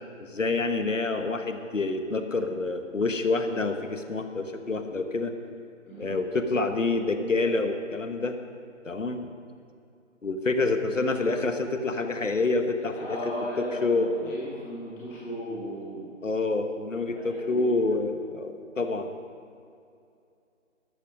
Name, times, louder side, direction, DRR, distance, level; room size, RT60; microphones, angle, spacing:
voice 1, 0.2-5.3 6.0-8.3 8.8-9.3 10.2-13.2 13.6-14.3 16.2-19.1, left 3 dB, 70° left, 7 dB, 1.4 m, -27 dB
voice 2, 5.9-6.2 12.9-16.0 17.1-17.8, equal, 5° left, -9 dB, 1.3 m, -36 dB
13.0 x 13.0 x 5.2 m, 2.5 s
figure-of-eight pair, 155°, 39 cm